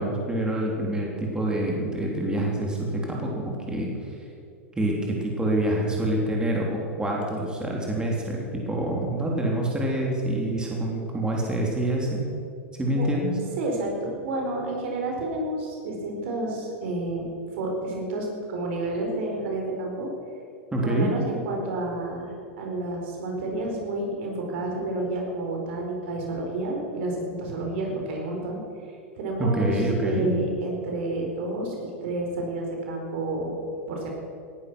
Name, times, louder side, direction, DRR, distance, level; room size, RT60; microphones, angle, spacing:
voice 1, 0.0-3.9 4.8-12.2 12.7-13.3 20.7-21.1 29.4-30.3, right 1 dB, 10° right, -2 dB, 3.5 m, -26 dB
voice 2, 13.6-17.3 17.6-20.1 20.8-28.6 29.2-33.5 33.9-34.1, right 2 dB, 65° right, 1 dB, 4.7 m, -30 dB
19.0 x 11.5 x 6.2 m, 2.5 s
hypercardioid pair, 105°, 7 cm